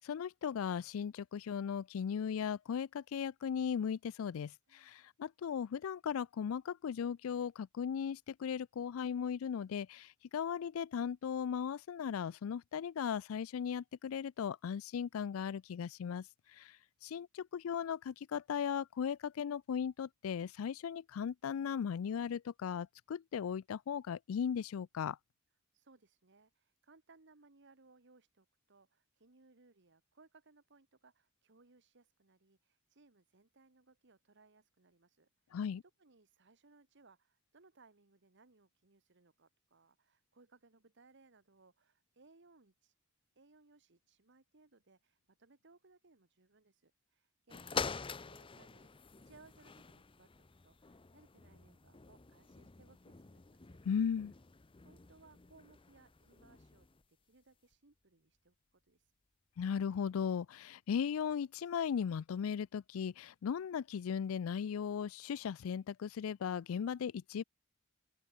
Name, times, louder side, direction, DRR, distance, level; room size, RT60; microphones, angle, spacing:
voice 1, 0.0-16.8 17.0-25.2 35.5-35.8 53.8-54.3 59.6-67.4, left 7 dB, 90° left, 0.4 m, -37 dB
voice 2, 25.7-42.9 43.3-53.8 54.8-59.1, right 3 dB, 60° right, 1.6 m, -66 dB
sound 1, 47.5-57.0 57.7-57.8, left 5 dB, 25° left, 0.7 m, -46 dB
open air
head